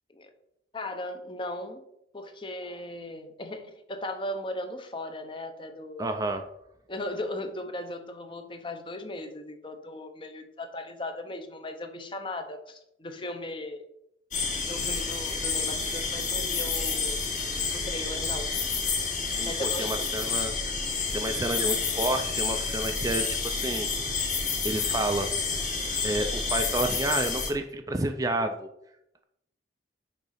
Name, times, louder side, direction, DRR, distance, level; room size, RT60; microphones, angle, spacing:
voice 1, 0.7-1.8 2.1-6.1 6.9-13.8 14.6-17.2 17.7-18.5 19.4-20.0, left 1 dB, 25° left, 7 dB, 0.7 m, -37 dB
voice 2, 6.0-6.4 19.3-20.8 21.1-23.9 24.6-25.3 26.0-28.7, right 2 dB, 20° right, 6 dB, 0.4 m, -30 dB
sound 1, 14.3-27.5, left 4 dB, 45° left, 1.3 m, -29 dB
6.7 x 3.7 x 5.7 m, 0.80 s
head